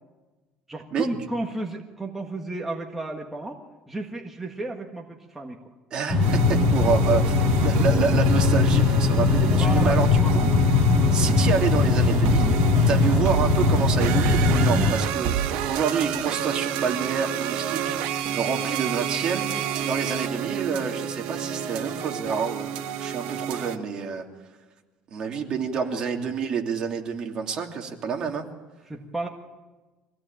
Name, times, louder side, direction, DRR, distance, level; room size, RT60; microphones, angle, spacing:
voice 1, 0.7-3.6 3.9-5.6 6.8-7.1 9.6-10.4 14.7-14.9 25.8-25.9 28.9-29.3, right 2 dB, 10° right, 1 dB, 1.7 m, -33 dB
voice 2, 5.9-7.3 7.6-10.5 11.1-12.6 12.9-24.2 25.1-28.5, right 6 dB, 40° right, 2 dB, 2.9 m, -28 dB
sound 1, 6.1-14.9, left 4 dB, 25° left, 4.1 m, -20 dB
sound 2, 6.2-23.8, right 9 dB, 90° right, 1.8 m, -30 dB
24.5 x 17.0 x 8.9 m, 1.2 s
cardioid pair, 145°, 2 cm